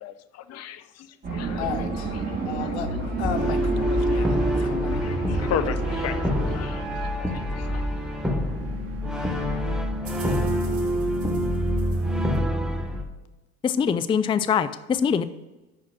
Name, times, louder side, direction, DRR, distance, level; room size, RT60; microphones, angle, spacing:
voice 1, 0.0-1.6 2.3-2.7 4.1-4.3 4.5-7.9, left 9 dB, 50° left, 0.7 m, -35 dB
sound 1, 1.2-6.6, right 1 dB, 25° right, 2.5 m, -29 dB
voice 2, 1.6-2.2 2.4-5.0, left 8 dB, 90° left, 0.7 m, -34 dB
Brass instrument, 3.2-13.0, equal, ahead, 1.1 m, -28 dB
sound 2, 3.3-12.4, right 2 dB, 45° right, 1.3 m, -31 dB
voice 3, 13.6-15.2, left 7 dB, 15° left, 0.3 m, -23 dB
5.9 x 5.1 x 5.9 m
hypercardioid pair, 75°, 33 cm